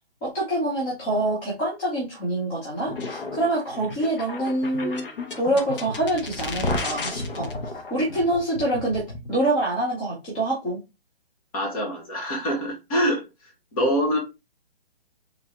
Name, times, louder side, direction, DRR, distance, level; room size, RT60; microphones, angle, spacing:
voice 1, 0.2-5.0 5.4-7.5 7.9-9.0 9.3-10.8, right 1 dB, 10° left, 0.6 m, -25 dB
sound 1, 2.9-9.3, left 2 dB, 60° left, 1.1 m, -33 dB
voice 2, 11.5-13.2 13.7-14.2, equal, 35° left, 1.8 m, -24 dB
4.5 x 3.3 x 2.9 m
hypercardioid pair, 160°, 31 cm